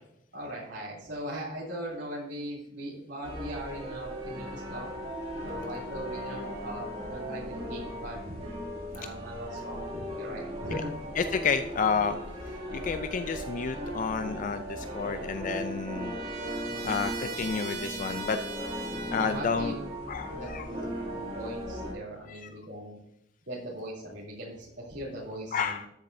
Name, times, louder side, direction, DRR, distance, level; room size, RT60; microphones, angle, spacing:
voice 1, 0.3-4.9 5.4-8.4 8.9-10.9 16.7-17.0 19.2-19.7 20.4-23.0 23.5-25.8, equal, 75° right, -6 dB, 3.1 m, -40 dB
sound 1, 3.2-21.9, equal, 35° right, 2.5 m, -37 dB
voice 2, 11.2-16.2 16.8-18.4 19.1-19.7 20.1-20.7 22.3-22.5 25.5-25.9, left 5 dB, 45° left, 9 dB, 0.4 m, -31 dB
Trumpet, 15.0-19.7, right 5 dB, 55° right, 2.2 m, -41 dB
13.0 x 7.1 x 2.7 m, 0.79 s
head